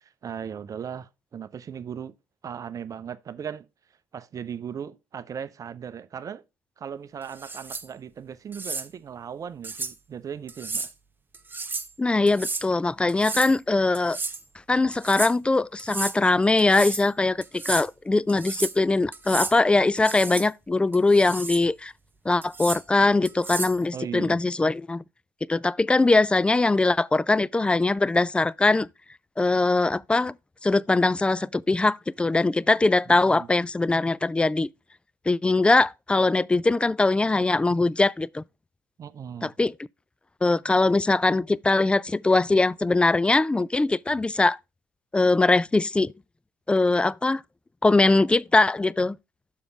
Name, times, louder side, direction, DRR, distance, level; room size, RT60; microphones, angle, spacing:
voice 1, 0.0-2.1 2.4-3.7 4.1-6.4 6.8-10.9 23.9-24.4 33.1-33.5 39.0-39.5, right 8 dB, 40° right, 0.7 m, -37 dB
sound 1, 7.3-7.9 8.5-8.9 9.6-9.9 10.5-10.9 11.3-11.9 12.3-12.7 13.1-13.6 13.9-14.4 14.9-15.3 15.8-16.2 16.6-17.1 17.4-17.9 18.3-18.8 19.1-19.6 20.0-20.5 20.9-21.6 22.4-22.8 23.3-23.8, right 4 dB, 20° right, 1.1 m, -33 dB
voice 2, 12.0-14.2 14.7-21.9 22.3-25.0 25.5-28.9 29.4-30.3 30.6-34.7 35.3-38.4 39.4-39.7 40.4-44.6 45.1-46.1 46.7-47.4 47.8-49.2, left 3 dB, 10° left, 0.3 m, -21 dB
6.9 x 4.7 x 5.2 m
hypercardioid pair, 55°, 9 cm